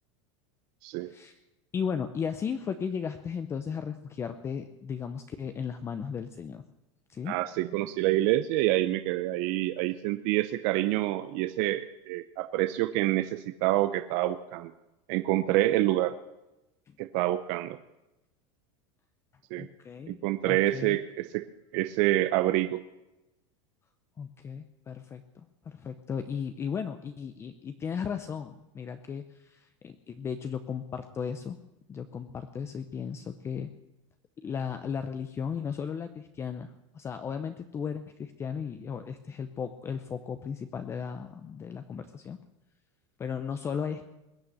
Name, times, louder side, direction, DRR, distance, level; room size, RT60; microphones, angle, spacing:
voice 1, 1.1-1.4 1.7-6.6 7.1-7.3 19.6-20.2 20.5-21.0 24.2-25.2 25.7-31.6 31.9-33.7 34.4-42.4 43.2-44.1, left 7 dB, 15° left, 9 dB, 0.7 m, -35 dB
voice 2, 7.3-14.7 15.1-16.1 17.0-17.8 19.5-19.7 20.1-21.5 21.7-22.8, right 16 dB, 45° right, 10 dB, 0.7 m, -27 dB
21.0 x 8.6 x 7.9 m, 0.96 s
supercardioid pair, 160°, 16 cm